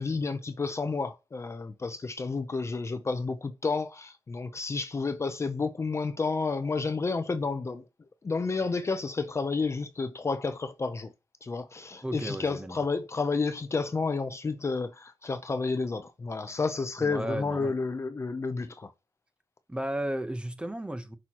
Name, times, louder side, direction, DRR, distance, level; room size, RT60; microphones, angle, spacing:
voice 1, 0.0-7.8 8.2-11.1 11.4-18.9, left 4 dB, 30° left, 0.6 m, -31 dB
voice 2, 12.0-12.8 17.0-17.7 19.7-21.2, right 1 dB, 10° right, 0.8 m, -34 dB
9.9 x 6.2 x 2.9 m
wide cardioid pair, 170°, 10 cm